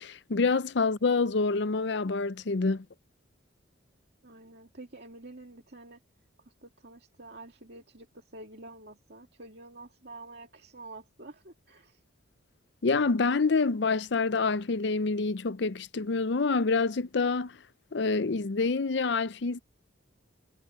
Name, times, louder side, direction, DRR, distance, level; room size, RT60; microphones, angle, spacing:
voice 1, 0.0-2.8 12.8-17.6 17.9-19.6, left 4 dB, 60° left, 0.6 m, -27 dB
voice 2, 4.2-6.0 6.5-12.0, right 2 dB, 55° right, 2.5 m, -48 dB
head